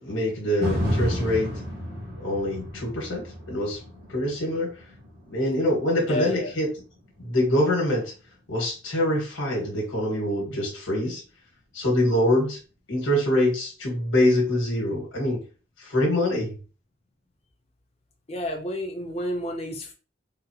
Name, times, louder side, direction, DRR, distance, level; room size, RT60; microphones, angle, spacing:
voice 1, 0.0-1.5 2.2-3.8 4.1-4.7 5.3-6.7 7.2-8.1 8.5-11.2 11.7-12.6 12.9-15.4 15.8-16.6, left 1 dB, 85° left, -1 dB, 1.3 m, -24 dB
sound 1, 0.6-8.8 9.2-9.3, left 1 dB, 50° right, 1.1 m, -33 dB
voice 2, 6.1-6.5 18.3-19.9, left 1 dB, 30° left, 3 dB, 0.5 m, -30 dB
3.9 x 2.0 x 2.7 m, 0.36 s
head